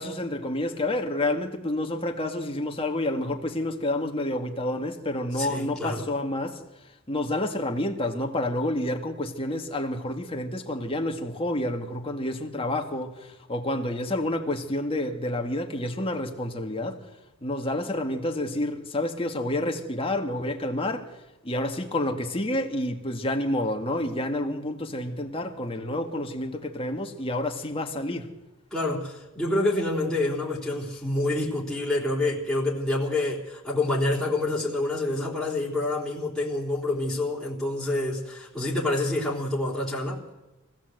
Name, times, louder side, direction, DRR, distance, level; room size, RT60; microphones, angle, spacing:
voice 1, 0.0-6.6 7.1-17.0 17.4-21.1 21.4-28.3, left 1 dB, 25° left, 2.1 m, -29 dB
voice 2, 5.4-6.1 28.7-40.2, left 2 dB, ahead, 3.7 m, -27 dB
24.5 x 16.5 x 7.9 m
head